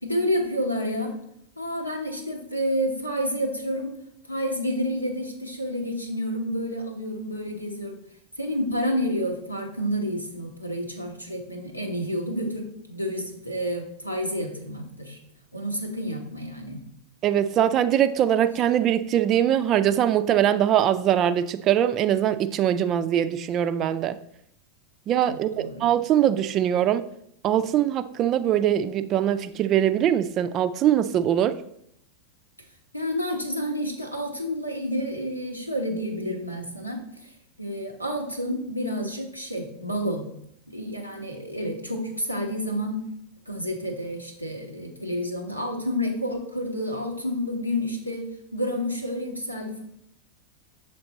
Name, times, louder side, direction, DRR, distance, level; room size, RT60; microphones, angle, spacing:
voice 1, 0.0-1.1 1.6-3.9 4.3-8.0 8.4-15.2 15.5-16.8 25.3-25.9 32.9-37.3 37.6-40.3 40.7-43.1 43.5-48.3 48.5-49.8, equal, 90° left, 2 dB, 1.0 m, -29 dB
voice 2, 17.2-24.2 25.1-27.1 27.4-31.5, right 10 dB, 35° right, 11 dB, 0.3 m, -22 dB
6.8 x 3.5 x 3.9 m, 0.73 s
figure-of-eight pair, 90°, 0 cm